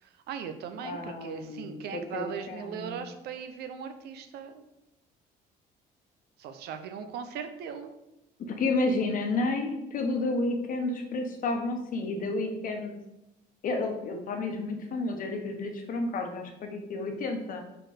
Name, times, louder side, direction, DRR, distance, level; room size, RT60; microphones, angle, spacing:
voice 1, 0.0-4.6 6.4-7.9, right 7 dB, 75° right, 8 dB, 0.7 m, -39 dB
voice 2, 0.8-3.0 8.4-12.9 13.6-17.6, left 2 dB, 55° left, 4 dB, 1.1 m, -31 dB
4.4 x 4.4 x 5.0 m, 0.90 s
cardioid pair, 110°, 17 cm